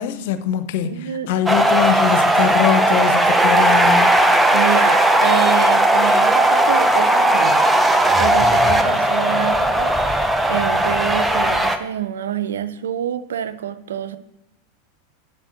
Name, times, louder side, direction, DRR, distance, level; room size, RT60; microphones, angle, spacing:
voice 1, 0.0-0.9 1.3-4.2, left 10 dB, 65° left, 0.8 m, -22 dB
voice 2, 0.8-1.3 4.5-14.2, right 9 dB, 75° right, 0.6 m, -27 dB
sound 1, 1.5-11.8, right 1 dB, 5° right, 0.8 m, -16 dB
7.6 x 7.4 x 6.4 m
hypercardioid pair, 90°, 0 cm